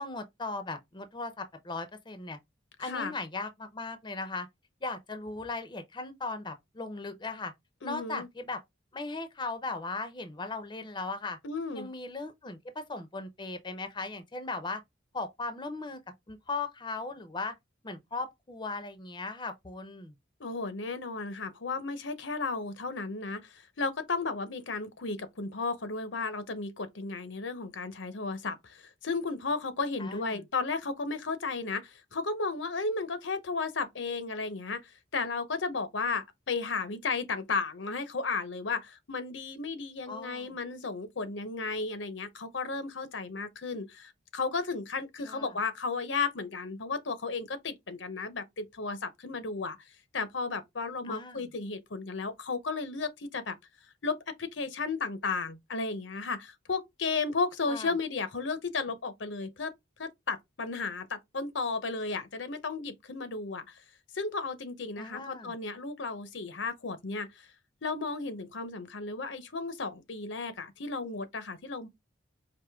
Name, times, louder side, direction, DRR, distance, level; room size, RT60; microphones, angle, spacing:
voice 1, 0.0-2.4 2.8-4.5 4.8-7.5 7.8-8.6 8.9-11.4 11.7-14.8 15.1-16.0 16.3-17.6 17.8-20.1 30.0-30.4 40.1-40.5 45.3-45.5 51.1-51.5 57.7-57.9 65.0-65.5, left 3 dB, 25° left, 0.6 m, -38 dB
voice 2, 2.8-3.1 7.8-8.3 11.4-11.9 20.4-49.8 50.1-53.6 54.0-59.7 60.0-63.8 64.1-67.5 67.8-71.9, left 4 dB, 85° left, 0.9 m, -34 dB
4.9 x 2.6 x 3.4 m
head